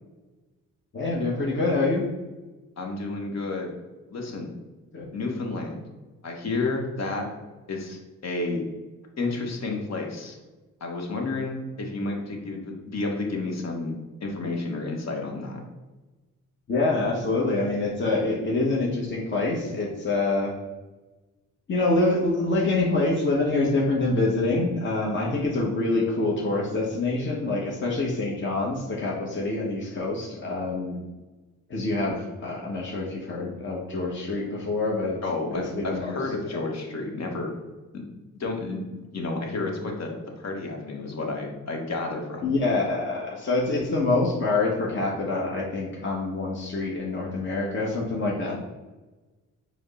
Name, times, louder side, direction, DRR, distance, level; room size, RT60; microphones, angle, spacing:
voice 1, 0.9-2.0 4.9-5.1 16.7-20.5 21.7-31.0 31.7-35.2 35.5-36.2 42.4-48.6, left 2 dB, 35° left, -2 dB, 1.0 m, -26 dB
voice 2, 2.8-3.7 4.1-4.5 5.1-5.8 6.2-7.3 7.7-8.6 9.2-10.4 10.8-15.6 35.2-37.5 37.9-38.0 38.3-38.8 39.1-42.5, left 3 dB, 50° left, 1 dB, 1.2 m, -31 dB
4.8 x 2.1 x 4.0 m, 1.2 s
supercardioid pair, 60°, 33 cm